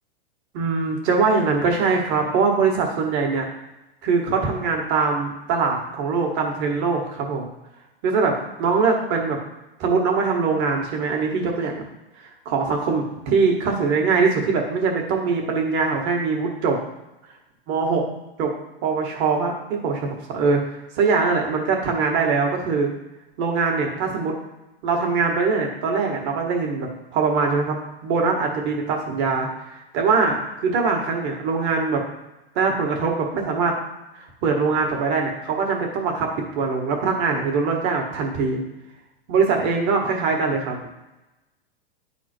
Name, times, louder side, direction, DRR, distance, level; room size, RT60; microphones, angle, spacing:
voice 1, 0.5-3.5 4.0-7.5 8.0-9.4 9.8-11.8 12.2-16.8 17.7-18.0 18.4-18.5 18.8-22.9 23.4-24.3 24.8-27.8 28.0-32.0 32.6-33.8 34.1-38.6 39.3-40.8, right 4 dB, 35° right, 1 dB, 1.9 m, -22 dB
11.0 x 4.2 x 4.6 m, 0.99 s
supercardioid pair, 150°, 30 cm